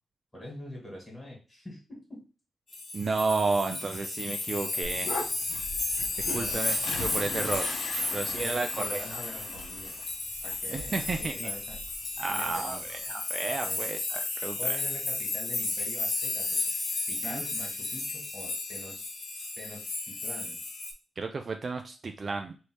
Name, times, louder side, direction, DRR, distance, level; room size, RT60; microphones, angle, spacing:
voice 1, 0.3-2.2 5.8-5.9 6.3-6.7 8.0-10.0 10.4-11.8 12.3-12.8 13.6-13.9 14.6-16.6 17.1-19.1 19.6-20.6, left 1 dB, 10° left, -3 dB, 1.9 m, -44 dB
sound 1, 2.7-20.9, left 3 dB, 50° left, 1.1 m, -33 dB
voice 2, 2.9-5.1 6.3-7.7 8.1-9.2 10.7-11.5 12.2-14.8 17.2-17.4 21.2-22.5, right 3 dB, 40° right, 5 dB, 0.4 m, -32 dB
sound 2, 4.8-13.1, left 2 dB, 80° left, 1.0 m, -41 dB
3.3 x 2.7 x 4.6 m, 0.33 s
wide cardioid pair, 125°, 0 cm